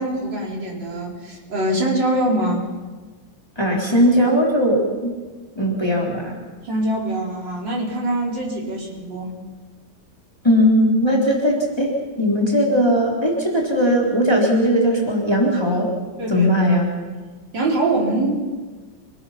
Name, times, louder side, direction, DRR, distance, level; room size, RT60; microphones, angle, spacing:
voice 1, 0.0-2.6 6.6-9.3 16.2-16.5 17.5-18.3, right 1 dB, 70° right, -2 dB, 5.0 m, -23 dB
voice 2, 3.6-5.1 5.6-6.4 10.4-11.9 12.2-15.9 16.3-16.9, equal, 15° left, -2 dB, 3.7 m, -18 dB
27.5 x 20.0 x 5.8 m, 1.4 s
omnidirectional pair, 2.0 m